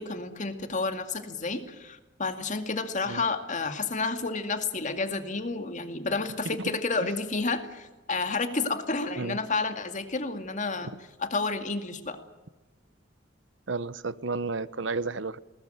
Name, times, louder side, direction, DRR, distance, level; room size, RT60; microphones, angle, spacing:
voice 1, 0.0-10.9 11.2-12.2, left 3 dB, 40° left, 2.3 m, -30 dB
voice 2, 13.7-15.4, right 3 dB, 70° right, 0.9 m, -32 dB
20.5 x 19.0 x 9.2 m
head